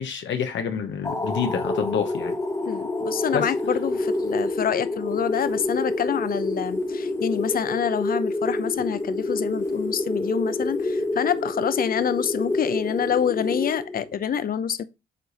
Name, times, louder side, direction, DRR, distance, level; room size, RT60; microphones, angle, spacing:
voice 1, 0.0-2.3 3.3-3.5, left 7 dB, 70° left, 1.1 m, -27 dB
sound 1, 1.0-14.3, left 2 dB, 15° left, 1.2 m, -28 dB
voice 2, 2.7-14.8, left 8 dB, 50° left, 0.7 m, -27 dB
7.7 x 3.2 x 4.0 m
cardioid pair, 90°, 20 cm